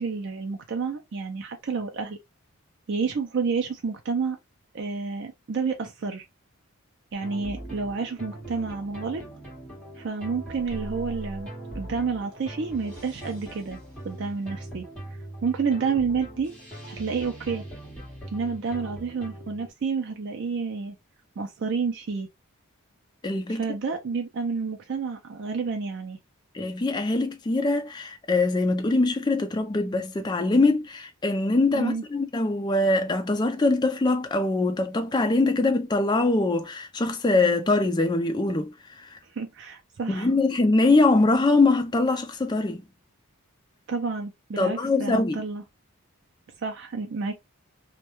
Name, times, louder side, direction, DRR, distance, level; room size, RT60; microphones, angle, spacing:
voice 1, 0.0-2.2 2.9-4.4 4.7-6.2 7.1-9.2 10.0-11.5 11.7-14.9 15.4-16.5 16.9-17.6 18.3-21.0 21.4-22.3 23.5-26.2 31.7-32.0 39.3-40.3 43.9-45.6 46.6-47.4, right 5 dB, 55° right, 0.4 m, -29 dB
sound 1, 7.2-19.7, right 1 dB, 5° left, 1.1 m, -40 dB
voice 2, 23.2-23.6 26.5-38.7 39.0-39.2 40.1-42.8 44.6-45.4, left 2 dB, 20° left, 0.3 m, -23 dB
2.2 x 2.1 x 2.9 m
head